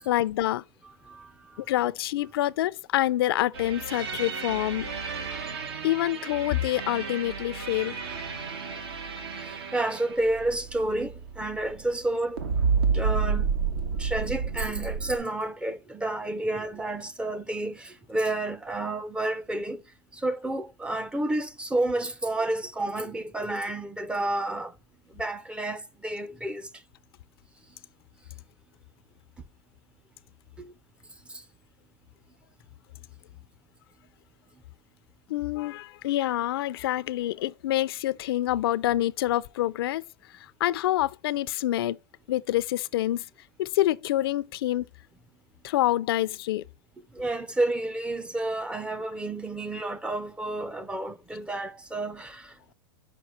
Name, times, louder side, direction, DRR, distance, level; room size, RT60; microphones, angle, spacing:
voice 1, 0.1-0.6 1.6-4.9 5.8-8.0 35.3-40.0 40.6-42.0 42.3-43.3 43.6-44.9 45.6-46.6, left 14 dB, 75° left, 0.5 m, -26 dB
voice 2, 1.1-1.6 9.4-12.4 12.9-13.5 14.0-19.8 20.1-24.7 25.1-26.7 30.6-30.7 31.3-31.4 47.1-52.7, right 2 dB, 10° right, 0.5 m, -30 dB
sound 1, 3.5-12.1 12.4-15.2, right 5 dB, 85° right, 1.6 m, -31 dB
6.1 x 4.8 x 4.4 m
supercardioid pair, 135°, 13 cm